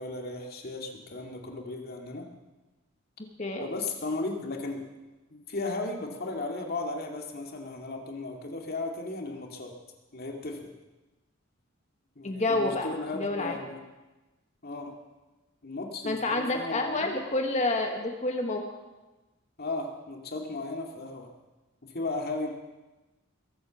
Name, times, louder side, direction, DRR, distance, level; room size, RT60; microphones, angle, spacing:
voice 1, 0.0-2.3 3.6-4.8 5.3-9.7 10.1-10.7 12.2-13.8 14.6-14.9 15.6-17.0 19.6-21.3 21.8-22.5, left 2 dB, 50° left, 2 dB, 2.4 m, -35 dB
voice 2, 12.2-12.9 13.1-13.6 16.0-18.6, left 2 dB, 35° left, 3 dB, 1.5 m, -28 dB
22.0 x 8.6 x 7.2 m, 1.1 s
head